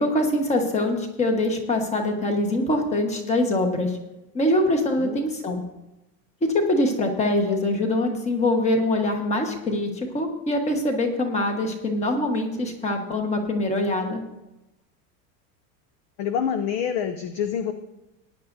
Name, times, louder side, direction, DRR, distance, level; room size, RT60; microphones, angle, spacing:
voice 1, 0.0-3.9 4.3-5.6 6.4-14.2, left 1 dB, 15° left, 3 dB, 1.2 m, -23 dB
voice 2, 16.2-17.7, left 8 dB, 35° left, 8 dB, 0.4 m, -26 dB
19.0 x 10.0 x 2.6 m, 0.97 s
supercardioid pair, 170°, 47 cm